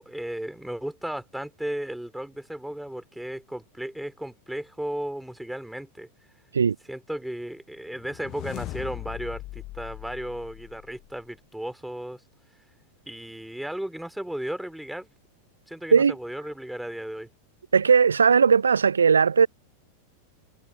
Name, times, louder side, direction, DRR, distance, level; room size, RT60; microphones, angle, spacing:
voice 1, 0.0-6.1 6.9-12.2 13.1-15.1 15.7-17.3, right 1 dB, ahead, 4.3 m, -35 dB
sound 1, 7.9-11.2, left 18 dB, 40° left, 1.8 m, -39 dB
voice 2, 17.7-19.5, right 6 dB, 70° right, 0.4 m, -18 dB
figure-of-eight pair, 90°, 0 cm